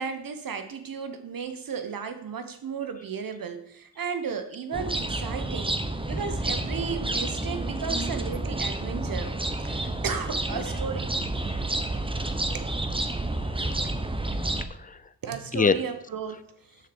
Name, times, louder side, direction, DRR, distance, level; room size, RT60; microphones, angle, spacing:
voice 1, 0.0-5.8 6.1-9.3 9.6-11.1 12.4-12.7 15.2-16.8, right 6 dB, 60° right, 8 dB, 1.2 m, -34 dB
sound 1, 4.7-14.6, right 2 dB, 15° right, 0.8 m, -30 dB
voice 2, 11.4-12.5 13.1-13.6 14.7-15.0 15.5-15.8, left 5 dB, 20° left, 14 dB, 0.5 m, -29 dB
7.1 x 6.4 x 4.4 m, 0.74 s
supercardioid pair, 40°, 39 cm